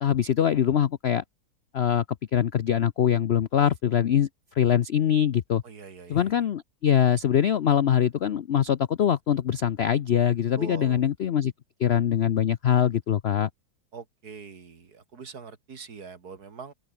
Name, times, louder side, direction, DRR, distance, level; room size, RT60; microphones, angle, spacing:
voice 1, 0.0-1.2 1.7-2.0 2.3-4.3 4.6-5.6 6.1-11.5 11.8-13.5, left 9 dB, 65° left, 0.6 m, -23 dB
voice 2, 5.6-6.4 10.5-11.0 13.9-16.7, right 5 dB, 60° right, 2.7 m, -43 dB
omnidirectional pair, 1.9 m